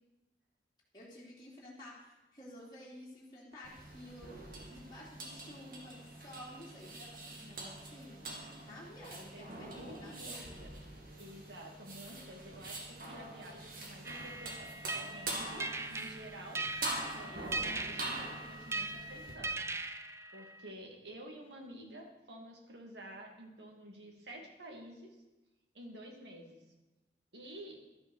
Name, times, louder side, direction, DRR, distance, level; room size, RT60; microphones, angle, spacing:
voice 1, 0.9-8.3 8.6-10.5, left 1 dB, 25° left, -6 dB, 3.0 m, -52 dB
sound 1, 3.6-19.3, right 2 dB, 50° right, 2.4 m, -44 dB
voice 2, 9.0-9.5 9.8-10.7 11.2-16.6 17.2-19.7 20.3-25.2 25.7-26.6 27.3-27.8, right 1 dB, 85° right, 1 dB, 2.7 m, -50 dB
sound 2, 14.0-20.7, right 2 dB, 15° right, 0.4 m, -40 dB
12.5 x 8.8 x 6.6 m, 1.0 s
head